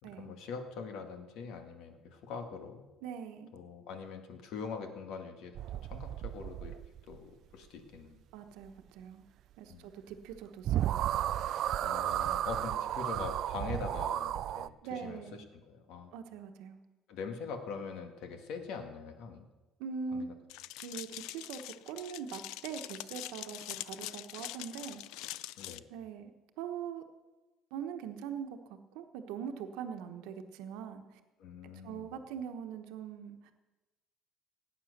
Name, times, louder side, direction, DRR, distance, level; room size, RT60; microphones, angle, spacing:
voice 1, 0.0-2.8 3.5-5.6 5.9-6.8 7.0-8.2 9.7-9.9 11.8-16.1 17.1-19.5 20.1-20.3 25.6-25.8 31.4-32.1, left 5 dB, 65° left, 6 dB, 1.8 m, -43 dB
voice 2, 3.0-3.5 8.3-9.2 9.6-11.1 14.8-15.4 16.1-16.8 19.8-20.3 20.8-25.0 25.9-26.3 26.6-27.0 27.7-31.2 31.6-33.5, right 7 dB, 90° right, 6 dB, 1.1 m, -42 dB
sound 1, 5.6-7.2 10.3-10.4 10.7-14.7, right 12 dB, 50° right, 0.3 m, -33 dB
sound 2, 20.5-25.8, left 16 dB, 80° left, 0.4 m, -44 dB
17.5 x 8.9 x 6.6 m, 1.1 s
cardioid pair, 160°, 0 cm